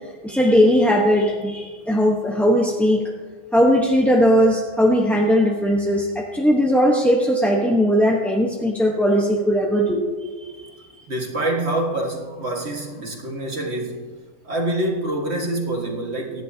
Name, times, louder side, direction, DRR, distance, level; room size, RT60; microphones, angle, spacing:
voice 1, 0.2-3.0 3.5-10.1 10.4-10.7, equal, ahead, -2 dB, 0.9 m, -18 dB
voice 2, 11.1-14.0 14.4-16.4, right 1 dB, 45° right, 0 dB, 2.0 m, -26 dB
24.0 x 10.5 x 2.8 m, 1.5 s
omnidirectional pair, 1.5 m